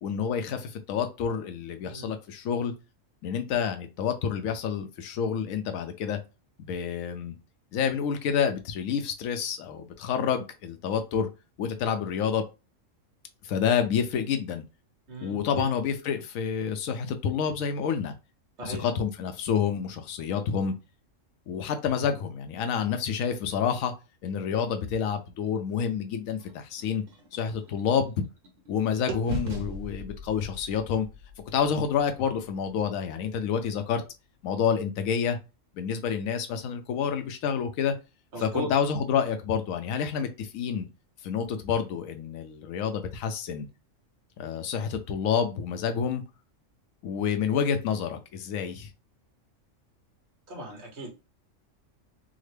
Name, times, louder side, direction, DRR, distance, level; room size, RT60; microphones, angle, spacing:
voice 1, 0.0-2.7 3.2-6.2 6.6-7.3 7.7-11.3 11.6-12.5 13.4-14.6 15.2-18.1 18.6-20.7 21.5-23.9 24.2-27.0 27.3-28.2 28.7-31.1 31.5-34.0 34.4-35.4 35.7-37.9 38.4-40.9 41.2-43.7 44.4-46.2 47.0-48.9, left 7 dB, 85° left, 7 dB, 1.0 m, -28 dB
voice 2, 15.1-15.6 18.6-18.8 38.3-38.7 50.5-51.1, right 1 dB, 55° right, 1 dB, 1.4 m, -37 dB
sound 1, 26.4-28.7 29.1-33.1, right 1 dB, 70° right, 1.2 m, -40 dB
3.7 x 2.1 x 3.2 m, 0.28 s
omnidirectional pair, 1.4 m